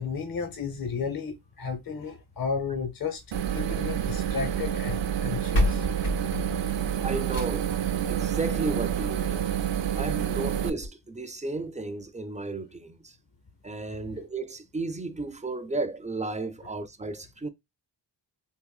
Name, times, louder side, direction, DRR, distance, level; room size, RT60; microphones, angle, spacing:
voice 1, 0.0-3.2 3.5-5.8, left 5 dB, 45° left, 0.9 m, -33 dB
sound 1, 3.2-4.4 5.2-5.3 5.5-7.8 9.2-9.3 9.7-9.8 10.1-10.2 10.8-10.9, left 1 dB, 85° left, 1.9 m, -30 dB
sound 2, 3.3-10.7, right 9 dB, 65° right, 0.5 m, -28 dB
voice 2, 7.0-7.7 8.1-9.4 10.0-13.1 13.6-17.5, right 2 dB, 15° right, 0.4 m, -33 dB
3.8 x 2.5 x 2.4 m
cardioid pair, 65°, 48 cm